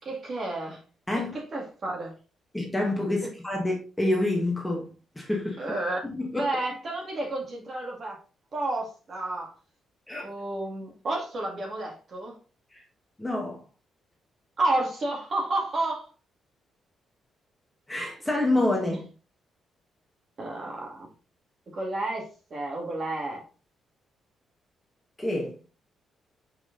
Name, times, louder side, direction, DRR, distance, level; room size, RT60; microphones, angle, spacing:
voice 1, 0.0-0.8 1.2-2.1 3.2-3.3 5.6-6.0 6.4-8.2 8.5-9.5 10.2-12.4 14.6-16.1 18.9-19.0 20.4-21.1 21.7-23.4, right 2 dB, 40° right, 2.1 m, -31 dB
voice 2, 1.1-1.4 2.5-4.9 5.1-5.6 6.0-6.4 10.1-10.3 12.7-12.8 13.2-13.6 17.9-19.0 25.2-25.5, left 1 dB, 10° left, 1.5 m, -27 dB
5.5 x 4.9 x 3.9 m
cardioid pair, 155°, 0 cm